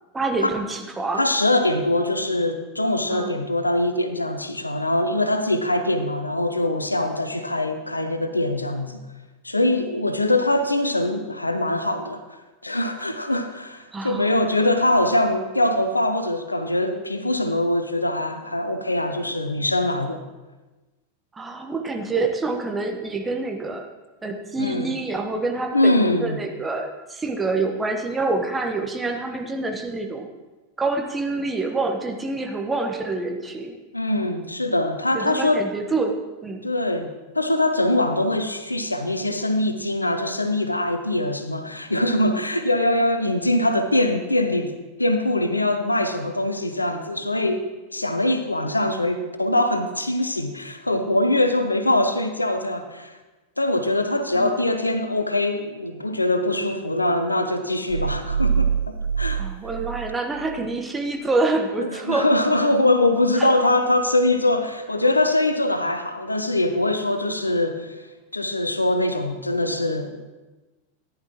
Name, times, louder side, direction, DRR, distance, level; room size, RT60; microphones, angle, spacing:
voice 1, 0.1-1.2 3.1-3.3 13.9-14.3 21.3-23.9 24.2-30.3 30.8-33.8 35.1-36.2 36.4-36.7 54.3-54.5 59.4-62.3 63.4-63.5, right 3 dB, 10° right, 3 dB, 1.2 m, -26 dB
voice 2, 1.1-9.0 9.4-12.2 12.6-20.2 24.6-24.9 25.7-26.4 33.9-35.7 36.6-44.7 45.0-47.7 47.9-53.2 53.6-59.4 61.8-68.0 68.3-70.2, left 1 dB, 85° left, 8 dB, 0.7 m, -23 dB
sound 1, 57.9-60.8, right 6 dB, 65° right, 0.3 m, -25 dB
14.5 x 10.5 x 3.0 m, 1.2 s
figure-of-eight pair, 90°, 0 cm